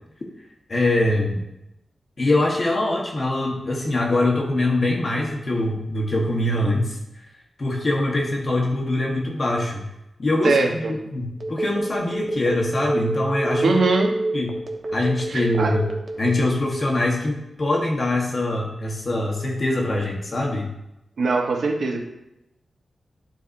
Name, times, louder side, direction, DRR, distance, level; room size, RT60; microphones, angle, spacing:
voice 1, 0.7-1.4 2.2-7.0 7.6-9.8 10.2-13.8 14.3-14.5 14.9-15.8 16.2-20.7, left 1 dB, 45° left, -1 dB, 1.1 m, -23 dB
voice 2, 10.4-10.9 13.6-14.2 15.3-15.8 21.2-22.0, right 3 dB, 80° right, 2 dB, 1.0 m, -22 dB
Telephone, 11.4-16.6, right 1 dB, 55° right, 1.0 m, -27 dB
12.0 x 4.1 x 2.6 m, 0.90 s
wide cardioid pair, 100°, 0 cm